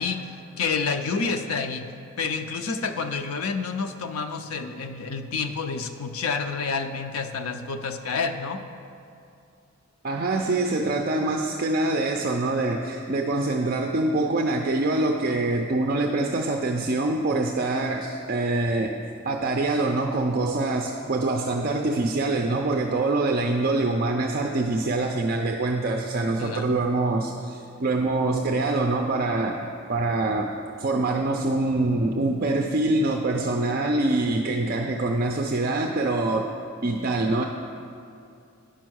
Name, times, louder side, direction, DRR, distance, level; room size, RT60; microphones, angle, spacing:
voice 1, 0.0-1.9 2.2-8.6 26.4-26.8, left 5 dB, 70° left, 6 dB, 0.5 m, -29 dB
voice 2, 10.0-19.0 19.2-29.6 29.9-30.5 30.8-36.5 36.8-37.4, right 2 dB, 40° right, 2 dB, 0.4 m, -25 dB
10.0 x 5.5 x 6.2 m, 2.6 s
head